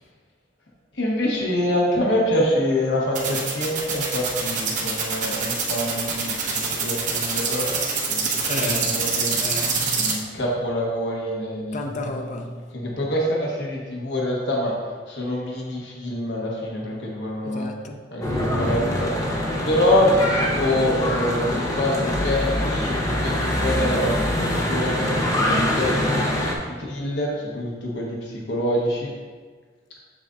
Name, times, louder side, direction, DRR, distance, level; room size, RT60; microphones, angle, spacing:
voice 1, 0.9-7.8 8.1-9.4 9.9-11.8 12.7-14.7 15.1-17.7 18.1-25.1 25.5-29.1, left 1 dB, 65° left, 1.2 m, -25 dB
sound 1, 3.1-10.1, right 5 dB, 45° right, 1.1 m, -24 dB
voice 2, 8.5-9.0 9.4-10.1 11.7-12.6 17.5-18.0, left 1 dB, 40° left, 0.5 m, -31 dB
Church bell / Traffic noise roadway noise, 18.2-26.5, left 1 dB, 20° left, 0.8 m, -24 dB
7.4 x 6.7 x 2.6 m
head